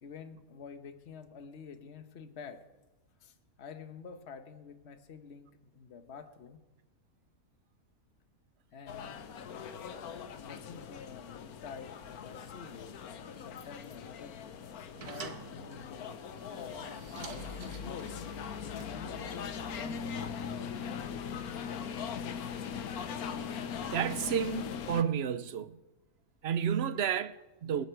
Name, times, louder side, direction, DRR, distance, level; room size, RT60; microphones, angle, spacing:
voice 1, 0.0-2.6 3.2-6.6 8.7-9.1 10.2-14.4 15.1-16.8 17.2-18.1 18.8-20.4, left 6 dB, 50° left, 1.3 m, -48 dB
sound 1, 8.9-25.0, left 7 dB, 80° left, 1.4 m, -40 dB
sound 2, 14.3-19.2, right 5 dB, 85° right, 1.8 m, -49 dB
voice 2, 23.9-25.8 26.4-27.9, right 8 dB, 55° right, 0.8 m, -31 dB
27.0 x 9.9 x 4.6 m
omnidirectional pair, 1.6 m